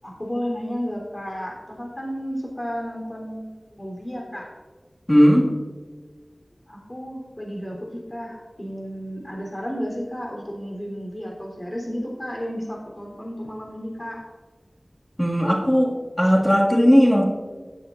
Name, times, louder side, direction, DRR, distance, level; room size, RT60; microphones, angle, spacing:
voice 1, 0.0-4.5 6.7-14.2, equal, 35° left, -1 dB, 3.5 m, -32 dB
voice 2, 5.1-5.5 15.2-17.3, equal, 15° left, -2 dB, 2.1 m, -17 dB
17.5 x 7.7 x 2.5 m, 1.4 s
wide cardioid pair, 50°, 0 cm